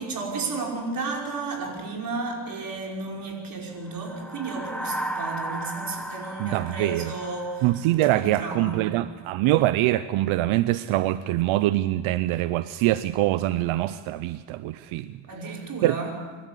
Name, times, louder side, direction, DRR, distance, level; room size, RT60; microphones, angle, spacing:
voice 1, 0.0-7.7 8.0-8.8 15.3-16.1, right 3 dB, 45° right, 5.5 m, -33 dB
sound 1, 3.9-8.4, right 1 dB, 5° left, 1.2 m, -35 dB
voice 2, 6.4-7.1 7.6-15.1 15.8-16.0, right 16 dB, 85° right, 0.7 m, -24 dB
25.5 x 12.5 x 8.3 m
cardioid pair, 110°, 47 cm